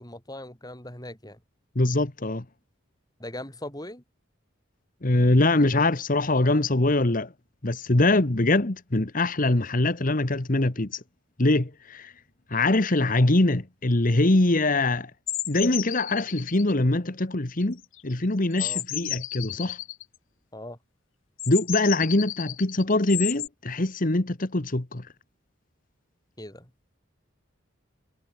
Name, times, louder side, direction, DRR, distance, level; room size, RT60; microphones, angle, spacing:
voice 1, 0.0-1.4 3.2-4.0 18.6-18.8 20.5-20.8 26.4-26.7, left 1 dB, 20° left, 7.3 m, -39 dB
voice 2, 1.7-2.4 5.0-7.3 7.6-11.0 11.4-12.1 12.5-15.1 15.5-19.8 21.5-25.1, left 2 dB, 45° left, 1.4 m, -23 dB
sound 1, 15.3-16.7 17.5-18.1 18.5-20.0 21.4-23.5, left 14 dB, 85° left, 2.5 m, -33 dB
head